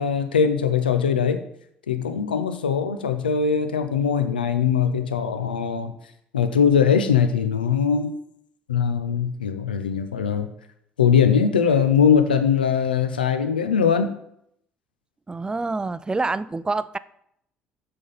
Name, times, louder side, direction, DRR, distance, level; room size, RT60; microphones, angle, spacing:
voice 1, 0.0-1.4 1.9-5.9 6.3-8.1 8.7-10.5 11.0-14.1, left 7 dB, 85° left, 0.5 m, -21 dB
voice 2, 15.3-17.0, right 3 dB, 15° right, 0.4 m, -26 dB
6.2 x 5.5 x 5.5 m
figure-of-eight pair, 55°, 5 cm